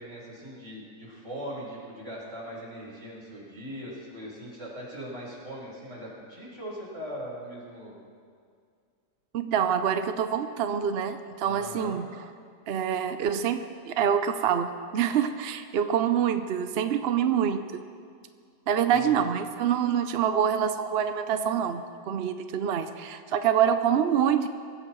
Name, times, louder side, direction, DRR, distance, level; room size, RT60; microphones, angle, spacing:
voice 1, 0.0-8.0 11.4-12.0 18.9-19.3, equal, 40° right, -5 dB, 5.0 m, -40 dB
voice 2, 9.3-12.1 12.7-17.6 18.7-24.5, right 8 dB, 70° right, 9 dB, 0.6 m, -26 dB
23.5 x 15.0 x 3.1 m, 2.2 s
omnidirectional pair, 1.8 m